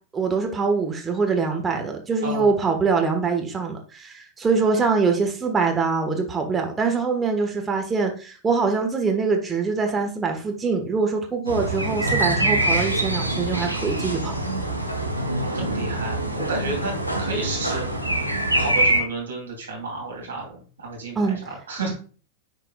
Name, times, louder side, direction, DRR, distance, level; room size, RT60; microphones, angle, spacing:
voice 1, 0.1-14.3 21.1-21.4 21.8-22.0, right 4 dB, 15° right, 2 dB, 1.3 m, -24 dB
sound 1, 11.5-19.0, right 1 dB, 90° right, 0.9 m, -24 dB
voice 2, 15.5-17.9 18.6-22.0, right 3 dB, 70° right, 0 dB, 2.9 m, -32 dB
10.5 x 4.5 x 2.3 m, 0.38 s
figure-of-eight pair, 90°, 0 cm